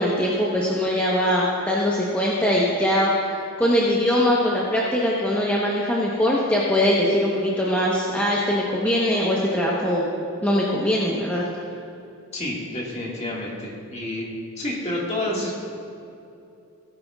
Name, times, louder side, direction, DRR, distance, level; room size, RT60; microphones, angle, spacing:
voice 1, 0.0-10.1 10.4-11.4, left 1 dB, 5° left, -6 dB, 1.0 m, -22 dB
voice 2, 12.3-14.3 14.6-15.6, left 1 dB, 30° left, -3 dB, 1.8 m, -29 dB
18.0 x 9.6 x 2.4 m, 2.6 s
head